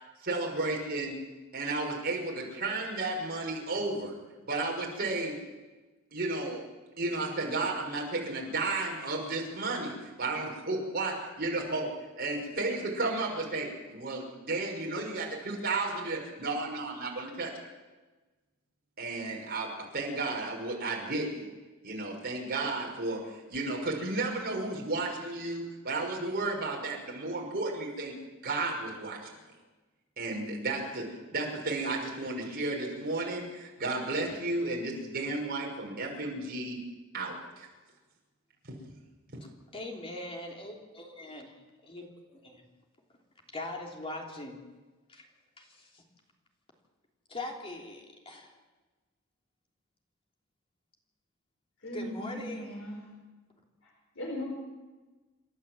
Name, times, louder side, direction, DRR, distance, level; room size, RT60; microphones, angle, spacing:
voice 1, 0.2-1.2 1.5-4.2 4.4-5.4 6.1-6.7 7.0-17.5 19.0-21.4 21.8-28.1 28.4-29.3 30.2-36.8 37.1-37.7 38.7-38.8 39.3-39.4, right 2 dB, 45° right, -1 dB, 6.0 m, -33 dB
voice 2, 39.7-41.5 41.9-42.1 42.4-42.7 43.5-44.6 45.1-45.3 45.6-46.0 47.3-48.5 51.9-52.7, left 2 dB, 25° left, 1 dB, 3.3 m, -41 dB
voice 3, 51.8-53.0 54.1-54.5, left 1 dB, 65° left, -2 dB, 4.9 m, -38 dB
28.0 x 12.5 x 7.9 m, 1.2 s
head